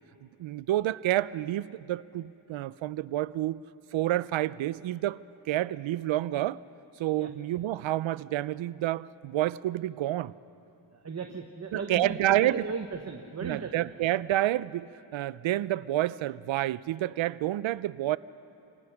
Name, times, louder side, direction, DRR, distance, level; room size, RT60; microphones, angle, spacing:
voice 1, 0.4-3.6 3.9-5.2 5.5-6.6 7.0-10.3 11.7-12.6 13.4-18.2, right 14 dB, 80° right, 18 dB, 0.5 m, -29 dB
voice 2, 11.0-13.9, right 4 dB, 35° right, 4 dB, 1.0 m, -36 dB
27.5 x 18.0 x 5.8 m, 2.9 s
cardioid pair, 95°, 45 cm